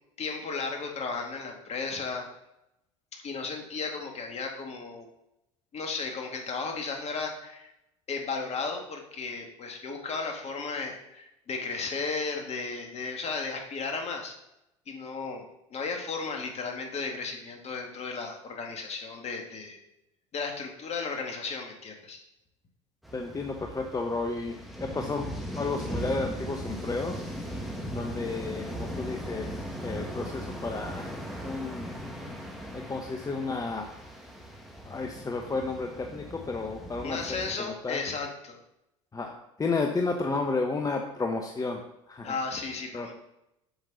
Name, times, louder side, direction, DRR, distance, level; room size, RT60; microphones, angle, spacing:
voice 1, 0.2-2.3 3.1-5.1 5.7-7.7 8.1-14.3 14.9-15.4 15.7-19.8 20.3-22.2 37.0-38.6 42.2-43.1, left 4 dB, 40° left, 3 dB, 1.9 m, -34 dB
sound 1, 23.0-37.5, equal, ahead, 1.9 m, -38 dB
voice 2, 23.1-25.3 25.6-27.2 27.9-31.1 31.4-31.9 32.7-33.9 34.8-38.0 39.1-41.8 42.1-42.4 42.9-43.1, left 3 dB, 20° left, 3 dB, 1.0 m, -32 dB
8.0 x 6.5 x 4.0 m, 0.87 s
hypercardioid pair, 75°, 17 cm